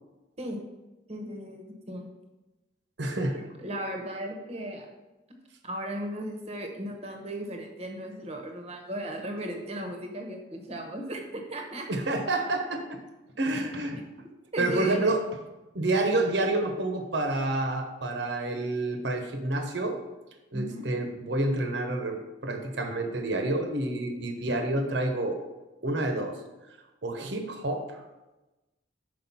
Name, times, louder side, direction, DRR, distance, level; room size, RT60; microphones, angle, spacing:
voice 1, 1.1-2.1 3.2-3.3 3.6-4.9 5.6-11.9 14.5-15.1 20.5-20.8, right 1 dB, 35° right, 3 dB, 1.0 m, -36 dB
voice 2, 3.0-3.4 11.9-13.0 13.4-14.0 14.6-15.2 15.7-20.0 20.5-25.4 25.8-26.4 27.0-27.8, right 2 dB, 65° right, 5 dB, 1.0 m, -28 dB
6.1 x 4.7 x 5.6 m, 1.1 s
head